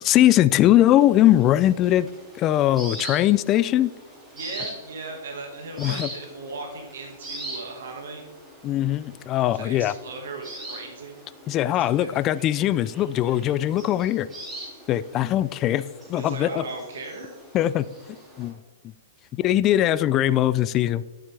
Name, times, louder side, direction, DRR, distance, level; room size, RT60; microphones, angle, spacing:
voice 1, 0.0-2.1 2.4-3.9 5.8-6.1 8.6-9.9 11.5-14.3 14.9-15.8 16.1-16.6 17.5-17.9 18.4-18.5 19.3-21.0, left 13 dB, 25° left, 16 dB, 0.3 m, -20 dB
sound 1, 1.0-18.5, right 1 dB, 10° right, 2.6 m, -42 dB
voice 2, 4.3-8.2 9.5-11.2 11.8-12.1 16.1-17.3, right 3 dB, 75° right, 3 dB, 1.7 m, -37 dB
11.5 x 7.7 x 3.3 m, 1.1 s
hypercardioid pair, 145°, 0 cm